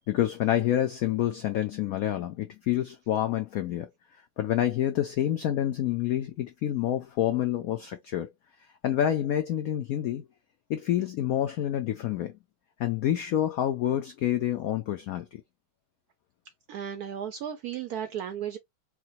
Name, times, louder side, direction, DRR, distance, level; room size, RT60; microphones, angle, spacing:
voice 1, 0.0-3.9 4.4-8.3 8.8-10.3 10.7-12.3 12.8-15.4, left 11 dB, 80° left, 0.7 m, -28 dB
voice 2, 16.7-18.6, right 9 dB, 75° right, 0.8 m, -34 dB
4.8 x 2.1 x 2.8 m
omnidirectional pair, 2.1 m